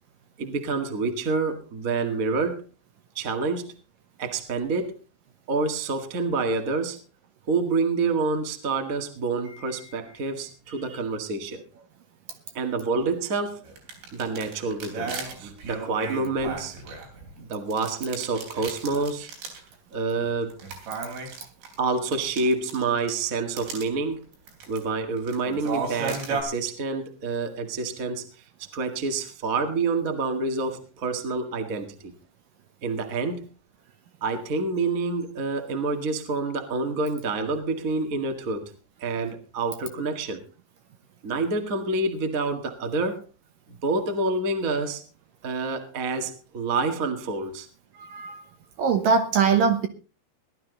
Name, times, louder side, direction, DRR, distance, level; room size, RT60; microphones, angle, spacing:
voice 1, 0.4-2.6 3.1-3.7 4.2-4.9 5.5-7.0 7.5-11.6 12.5-13.6 14.1-16.7 17.4-19.3 19.9-20.6 21.8-24.2 24.7-28.2 28.7-32.1 32.8-33.4 34.2-38.6 39.0-40.4 41.2-43.2 43.8-45.0 45.4-47.7, right 3 dB, 45° right, 5 dB, 1.0 m, -27 dB
sound 1, 13.7-17.3 17.7-19.7 19.9-20.0 20.5-23.2 23.6-23.9 24.3-24.8 25.2-26.4, right 4 dB, 85° right, 5.7 m, -34 dB
voice 2, 48.0-48.4 48.8-49.9, right 5 dB, 65° right, 7 dB, 2.4 m, -22 dB
18.0 x 12.0 x 3.9 m, 0.34 s
omnidirectional pair, 4.9 m